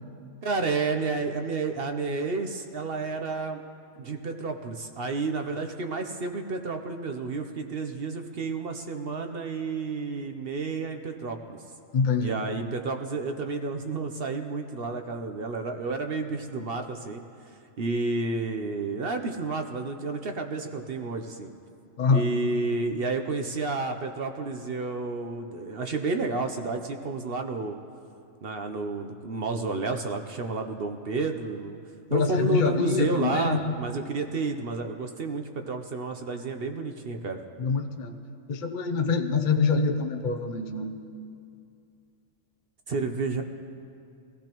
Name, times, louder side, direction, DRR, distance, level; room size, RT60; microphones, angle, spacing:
voice 1, 0.4-3.6 4.0-11.6 12.2-17.2 17.8-21.5 22.1-27.8 28.4-31.8 32.1-37.4 42.9-43.4, right 3 dB, 50° right, 5 dB, 0.8 m, -30 dB
voice 2, 11.9-12.4 22.0-22.2 32.1-33.7 37.6-38.1 38.5-40.9, left 5 dB, 45° left, 4 dB, 0.7 m, -25 dB
22.0 x 15.5 x 3.0 m, 2.5 s
omnidirectional pair, 1.4 m